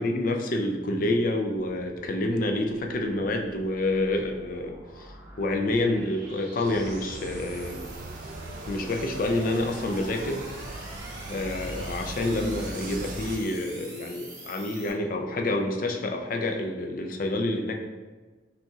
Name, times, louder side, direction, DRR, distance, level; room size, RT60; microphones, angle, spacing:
voice 1, 0.0-7.8 8.7-10.4 11.3-17.7, left 1 dB, 45° left, 3 dB, 0.4 m, -28 dB
sound 1, 3.2-14.9, right 1 dB, 20° right, 0.7 m, -45 dB
sound 2, 6.6-13.4, right 2 dB, 45° right, 0.3 m, -39 dB
5.7 x 2.7 x 2.3 m, 1.3 s
head